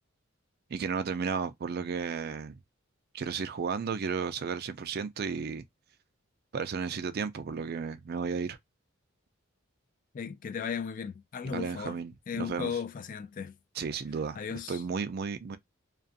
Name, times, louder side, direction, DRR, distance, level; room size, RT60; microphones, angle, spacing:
voice 1, 0.7-2.5 3.1-5.6 6.5-8.6 11.5-12.8 13.7-14.4 14.7-15.6, right 5 dB, 50° right, 0.4 m, -33 dB
voice 2, 10.1-12.0 12.3-13.6 14.4-14.8, left 6 dB, 40° left, 0.3 m, -36 dB
2.4 x 2.4 x 2.5 m
head